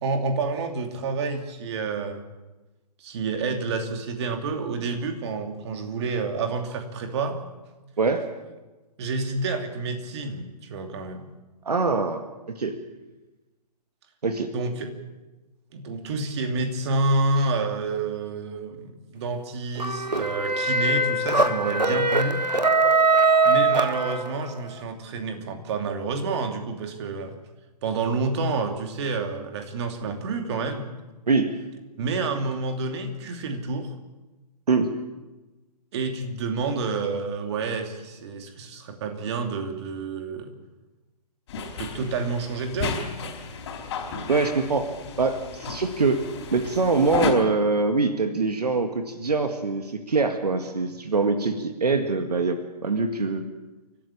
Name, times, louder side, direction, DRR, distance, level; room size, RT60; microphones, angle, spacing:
voice 1, 0.0-2.2 3.0-7.4 9.0-11.3 14.5-14.9 15.7-22.4 23.4-27.4 27.8-30.9 32.0-33.9 35.9-40.5 41.8-43.3, right 3 dB, 40° right, 5 dB, 2.8 m, -29 dB
voice 2, 8.0-8.3 11.7-12.2 12.5-12.7 14.2-14.5 31.3-31.5 34.7-34.9 44.3-44.9 45.2-46.2 46.5-53.4, right 4 dB, 70° right, 7 dB, 1.9 m, -23 dB
sound 1, 19.8-24.6, right 3 dB, 90° right, 1.6 m, -21 dB
sound 2, 41.5-47.3, left 5 dB, 40° left, 4.1 m, -33 dB
29.0 x 12.5 x 8.5 m, 1.1 s
figure-of-eight pair, 130°, 21 cm